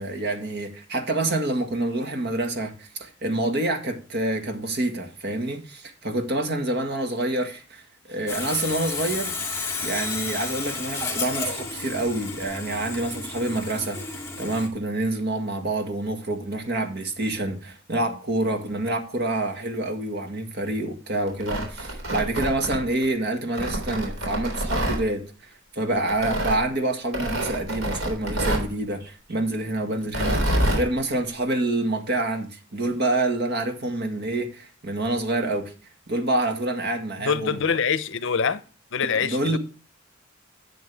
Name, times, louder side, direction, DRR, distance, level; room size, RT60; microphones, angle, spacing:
voice 1, 0.0-9.3 9.8-25.2 25.7-35.7 36.1-37.6 39.2-39.6, right 2 dB, 55° right, 1.7 m, -27 dB
Sawing, 8.3-14.7, left 4 dB, 15° left, 2.2 m, -32 dB
Tearing, 21.3-23.1 23.6-25.0 26.1-26.6 27.1-28.7 30.0-30.8, right 1 dB, 90° right, 3.6 m, -26 dB
voice 2, 37.2-38.6 38.9-39.6, left 6 dB, 65° left, 0.7 m, -25 dB
11.0 x 7.7 x 3.4 m
head